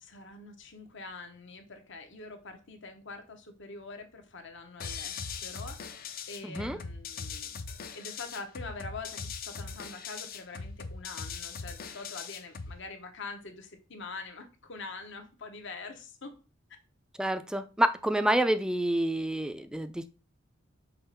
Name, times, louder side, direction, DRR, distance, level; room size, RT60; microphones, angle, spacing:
voice 1, 0.0-7.5 7.9-16.3, left 3 dB, 65° left, 1.1 m, -44 dB
sound 1, 4.8-12.8, left 5 dB, 45° left, 0.6 m, -40 dB
voice 2, 6.4-6.8 17.2-20.1, right 1 dB, 5° right, 0.4 m, -28 dB
5.7 x 3.0 x 5.6 m
head